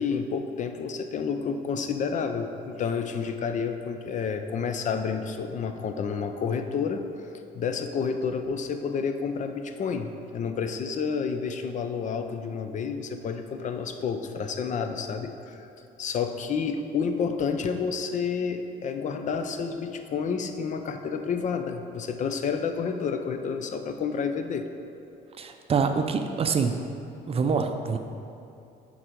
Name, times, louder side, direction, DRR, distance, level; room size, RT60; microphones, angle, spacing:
voice 1, 0.0-7.0 7.5-15.7 16.0-24.7, left 6 dB, 45° left, 7 dB, 0.5 m, -30 dB
voice 2, 25.4-26.8 27.3-28.0, right 5 dB, 35° right, 6 dB, 0.5 m, -25 dB
9.8 x 4.0 x 4.5 m, 2.7 s
cardioid pair, 110°, 17 cm